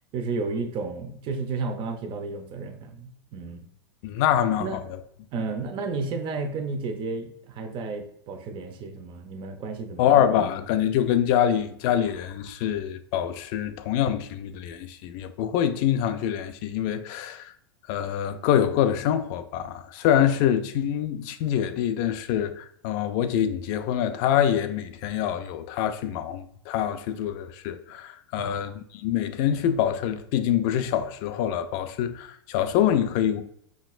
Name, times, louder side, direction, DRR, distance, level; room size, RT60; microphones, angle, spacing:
voice 1, 0.1-3.7 4.6-4.8 5.3-10.2 28.4-28.7, right 4 dB, 40° right, 0.6 m, -32 dB
voice 2, 4.0-4.7 10.0-17.5 17.9-33.4, left 10 dB, 50° left, 0.4 m, -25 dB
4.3 x 3.0 x 2.4 m
hypercardioid pair, 105°, 14 cm